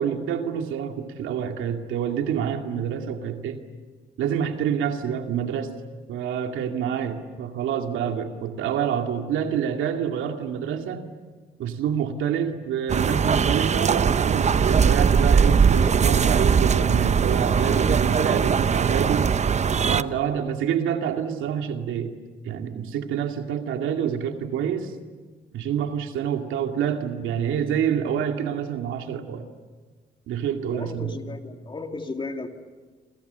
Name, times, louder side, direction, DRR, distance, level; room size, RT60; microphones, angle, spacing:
voice 1, 0.0-3.6 4.2-5.7 6.1-11.0 11.6-19.3 19.8-22.1 22.4-24.9 25.5-29.4 30.3-31.2, right 8 dB, 85° right, 4 dB, 2.4 m, -27 dB
sound 1, 12.9-20.0, right 6 dB, 35° right, 0.7 m, -20 dB
voice 2, 30.7-32.5, left 3 dB, 25° left, 5 dB, 2.7 m, -34 dB
28.0 x 27.0 x 6.9 m, 1.4 s
cardioid pair, 90°, 20 cm